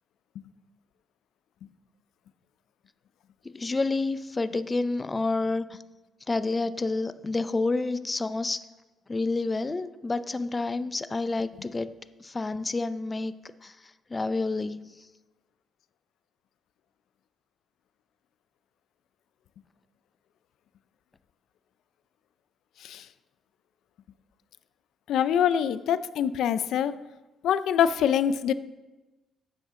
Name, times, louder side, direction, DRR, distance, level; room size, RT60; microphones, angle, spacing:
voice 1, 3.5-5.8 6.3-8.6 9.1-11.9 12.2-13.3 13.6-13.7 14.1-14.9, left 3 dB, 25° left, 13 dB, 0.5 m, -29 dB
voice 2, 25.1-27.0 27.4-28.5, left 9 dB, 80° left, 15 dB, 0.4 m, -24 dB
11.5 x 8.1 x 3.7 m, 1.1 s
cardioid pair, 90°, 0 cm